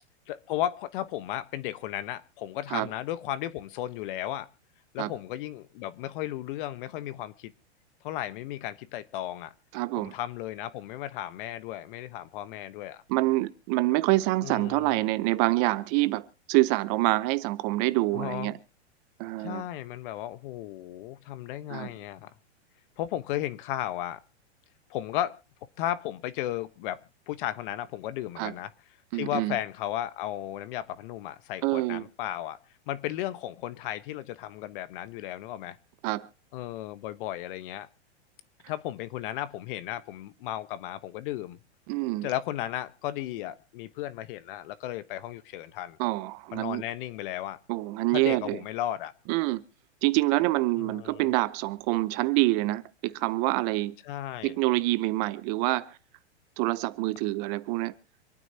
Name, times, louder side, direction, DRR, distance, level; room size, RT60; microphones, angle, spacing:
voice 1, 0.3-4.5 4.9-7.5 8.0-9.5 10.0-13.0 14.4-15.0 18.1-18.5 19.4-22.3 23.0-24.2 24.9-25.3 25.8-27.0 27.3-28.7 29.1-32.6 32.9-35.8 36.5-37.9 38.7-41.6 42.2-46.0 46.5-47.6 48.1-49.1 50.8-51.3 54.0-54.6, left 13 dB, 50° left, 1.1 m, -34 dB
voice 2, 9.7-10.1 13.1-18.6 19.2-19.6 21.7-21.9 28.4-28.5 29.1-29.6 31.6-32.1 36.0-36.3 41.9-42.3 46.0-46.8 47.7-48.6 49.3-49.6 50.0-53.9 54.4-56.0 56.6-57.9, right 20 dB, 40° right, 0.8 m, -26 dB
27.0 x 9.2 x 2.8 m
hypercardioid pair, 135°, 34 cm